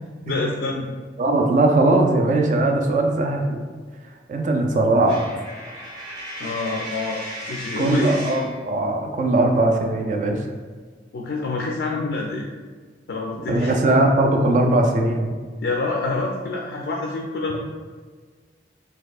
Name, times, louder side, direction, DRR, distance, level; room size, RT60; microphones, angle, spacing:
voice 1, 0.3-0.9 6.4-7.2 7.5-8.2 11.1-12.5 13.1-13.7 15.6-17.6, left 3 dB, 65° left, 0 dB, 0.4 m, -26 dB
voice 2, 1.2-3.7 4.3-5.2 7.8-10.4 13.5-15.4, right 2 dB, 40° right, 3 dB, 0.3 m, -19 dB
Coin (dropping), 5.0-8.6, equal, 25° right, 1.3 m, -35 dB
4.2 x 2.7 x 2.3 m, 1.5 s
head